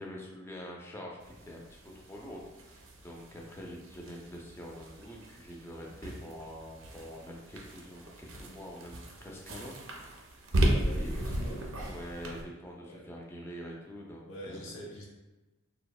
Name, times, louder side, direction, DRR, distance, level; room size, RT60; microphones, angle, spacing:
voice 1, 0.0-9.8 10.9-14.7, equal, 10° left, -2 dB, 0.3 m, -45 dB
sound 1, 1.2-12.4, right 1 dB, 65° right, 0.4 m, -36 dB
voice 2, 10.6-11.7 12.8-13.1 14.3-15.0, equal, 70° left, -3 dB, 0.6 m, -45 dB
2.8 x 2.0 x 2.3 m, 1.1 s
head